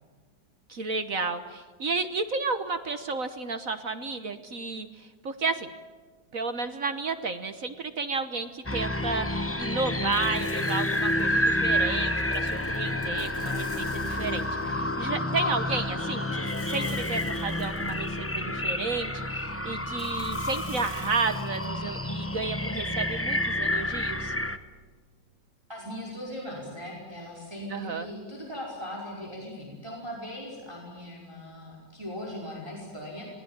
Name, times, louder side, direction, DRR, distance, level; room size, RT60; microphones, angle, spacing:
voice 1, 0.7-5.7 6.3-24.3 27.7-28.1, right 4 dB, 50° right, 9 dB, 1.4 m, -32 dB
sound 1, 8.7-24.6, left 1 dB, 10° left, 0.6 m, -29 dB
sound 2, 10.1-11.5 12.2-14.7 16.5-18.2 20.0-21.7, left 3 dB, 80° left, 4.3 m, -50 dB
sound 3, 10.5-21.4, left 7 dB, 50° left, 1.2 m, -45 dB
voice 2, 25.7-33.2, left 1 dB, 15° right, -3 dB, 5.3 m, -39 dB
27.0 x 20.5 x 8.9 m, 1.5 s
omnidirectional pair, 2.1 m